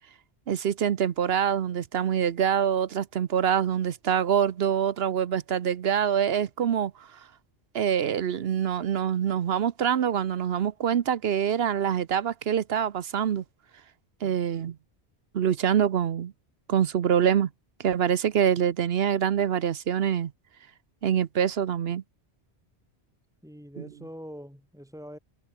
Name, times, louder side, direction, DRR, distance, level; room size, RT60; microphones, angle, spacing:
voice 1, 0.5-6.9 7.7-13.4 14.2-14.8 15.3-16.3 16.7-17.5 17.8-20.3 21.0-22.0 23.8-23.9, right 8 dB, 65° right, 1.0 m, -25 dB
voice 2, 23.4-25.2, equal, 5° right, 4.7 m, -44 dB
omnidirectional pair, 1.1 m